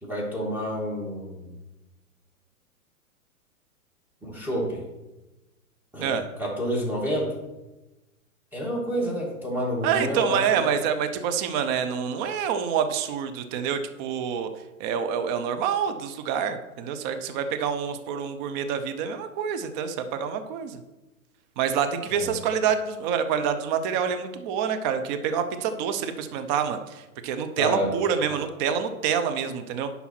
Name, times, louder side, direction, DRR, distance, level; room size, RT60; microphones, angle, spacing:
voice 1, 0.0-1.5 4.2-4.9 5.9-7.4 8.5-10.7 22.1-22.4 27.6-27.9 28.2-28.4, equal, 5° right, -4 dB, 2.3 m, -29 dB
voice 2, 9.8-14.5 14.8-20.8 21.6-29.9, right 7 dB, 30° right, 9 dB, 0.8 m, -27 dB
10.0 x 5.6 x 4.5 m, 1.1 s
hypercardioid pair, 115°, 44 cm